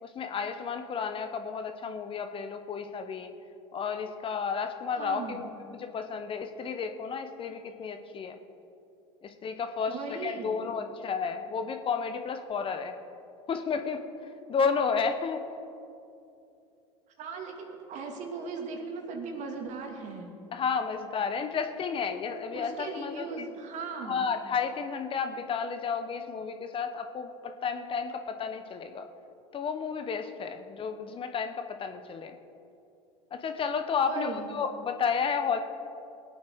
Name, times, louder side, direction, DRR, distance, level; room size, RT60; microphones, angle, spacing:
voice 1, 0.0-3.3 3.7-8.4 9.2-13.0 13.5-15.4 20.5-23.3 24.0-29.1 29.5-32.3 33.3-35.6, left 6 dB, 35° left, 7 dB, 1.0 m, -32 dB
voice 2, 5.0-5.5 9.9-10.7 17.2-20.3 22.5-24.3 34.0-34.5, right 4 dB, 50° right, 2 dB, 2.4 m, -38 dB
20.5 x 8.6 x 4.7 m, 2.7 s
hypercardioid pair, 80°, 15 cm